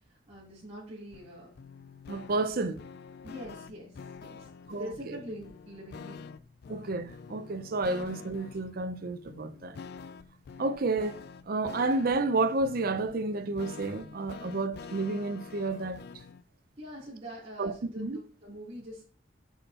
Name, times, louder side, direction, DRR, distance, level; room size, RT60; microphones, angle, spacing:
voice 1, 0.3-1.5 3.2-3.9 4.2-6.3 16.8-19.1, equal, 35° right, 3.1 m, -44 dB
sound 1, 1.1-16.4, left 5 dB, 60° left, 0.4 m, -47 dB
voice 2, 2.1-2.8 4.7-5.2 6.7-9.8 10.6-11.2 11.5-16.0 17.6-18.2, right 3 dB, 55° right, 0.5 m, -31 dB
8.2 x 5.4 x 2.8 m
head